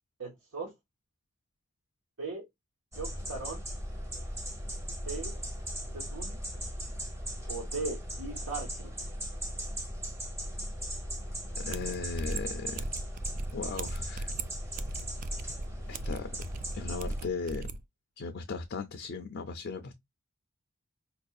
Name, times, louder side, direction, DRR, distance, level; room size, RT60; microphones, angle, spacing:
voice 1, 0.2-0.7 2.2-2.4 2.9-3.6 5.0-5.3 5.9-6.4 7.5-8.9, right 3 dB, 75° right, 1.3 m, -38 dB
sound 1, 2.9-17.2, equal, 15° right, 0.9 m, -38 dB
voice 2, 11.6-12.8 13.5-14.3 15.9-16.4 16.7-17.7 18.2-19.9, left 4 dB, 55° left, 0.5 m, -37 dB
sound 2, 11.7-17.8, right 3 dB, 40° right, 0.3 m, -39 dB
4.5 x 2.6 x 2.3 m
head